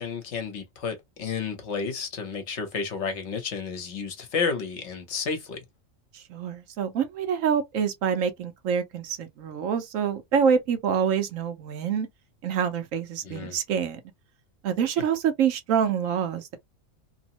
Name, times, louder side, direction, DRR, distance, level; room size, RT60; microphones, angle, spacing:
voice 1, 0.0-5.6 13.2-13.6, left 5 dB, 60° left, 1.1 m, -31 dB
voice 2, 6.1-12.1 12.4-14.0 14.6-16.6, right 7 dB, 80° right, 1.1 m, -26 dB
3.0 x 2.0 x 2.8 m
omnidirectional pair, 1.4 m